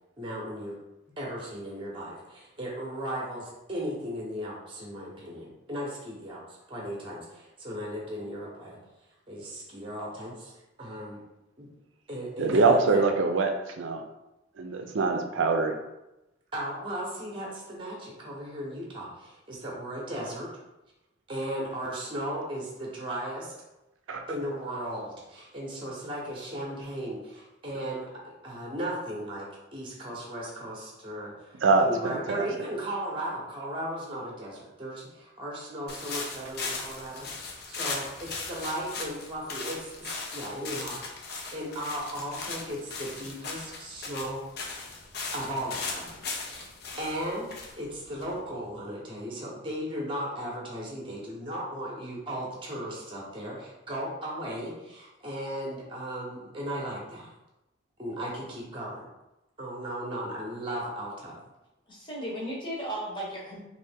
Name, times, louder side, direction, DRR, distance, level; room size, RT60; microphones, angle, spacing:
voice 1, 0.2-0.7 1.2-6.4 6.7-8.8 9.3-10.5 10.8-11.2 11.6-11.7 12.1-13.0 16.5-20.5 21.3-23.5 24.3-39.9 40.3-44.4 45.3-46.2 46.5-46.7 47.0-57.3 58.0-59.1 59.6-61.4, right 1 dB, 25° right, -3 dB, 0.8 m, -36 dB
voice 2, 12.4-14.0 14.6-15.8 24.1-24.2 31.6-32.5, right 4 dB, 75° right, 4 dB, 0.5 m, -24 dB
sound 1, 35.9-48.7, left 4 dB, 55° left, 0.5 m, -38 dB
voice 3, 61.9-63.6, right 1 dB, 25° left, -5 dB, 0.9 m, -35 dB
3.1 x 2.5 x 3.4 m, 0.95 s
head